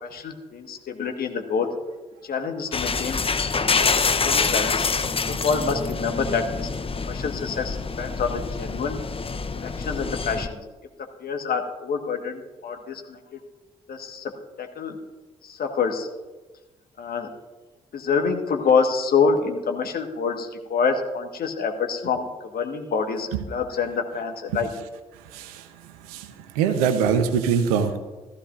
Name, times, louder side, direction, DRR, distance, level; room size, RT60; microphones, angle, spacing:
voice 1, 0.0-1.7 2.2-3.2 3.8-4.9 5.3-6.7 7.0-9.0 9.5-10.6 11.2-13.4 13.9-15.0 15.4-16.1 17.0-17.3 17.9-22.3 22.5-24.7, left 5 dB, 50° left, 5 dB, 1.6 m, -26 dB
sound 1, 2.7-10.5, left 4 dB, 30° left, 0.9 m, -26 dB
voice 2, 25.3-25.7 26.1-28.0, right 7 dB, 80° right, 9 dB, 0.9 m, -23 dB
15.0 x 14.5 x 2.6 m, 1.2 s
figure-of-eight pair, 40°, 19 cm